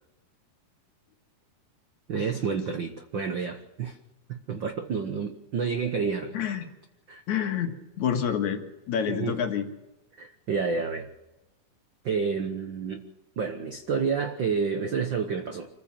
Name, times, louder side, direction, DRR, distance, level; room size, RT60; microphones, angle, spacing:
voice 1, 2.1-4.0 4.3-6.3 7.1-7.2 9.1-9.4 10.1-11.1 12.0-13.1 13.4-15.7, right 5 dB, 90° right, 6 dB, 1.0 m, -29 dB
voice 2, 6.3-6.7 7.3-8.6 8.9-9.7, left 8 dB, 60° left, 5 dB, 2.8 m, -28 dB
26.0 x 15.5 x 7.3 m, 0.99 s
omnidirectional pair, 4.0 m